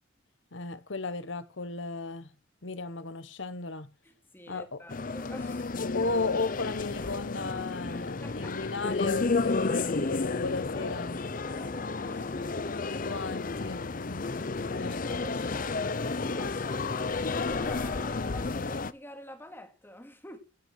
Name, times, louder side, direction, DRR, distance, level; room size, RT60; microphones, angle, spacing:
voice 1, 0.5-2.3 2.6-3.9 4.5-4.8 5.8-11.1 12.8-15.4, left 3 dB, 70° left, 1.1 m, -35 dB
voice 2, 4.0-5.7 8.2-8.6 9.5-9.6 10.0-10.2 10.7-12.5 15.0-15.7 16.2-20.4, equal, 10° left, 2.5 m, -47 dB
sound 1, 4.9-18.9, left 3 dB, 45° left, 0.7 m, -32 dB
17.0 x 8.4 x 6.3 m
head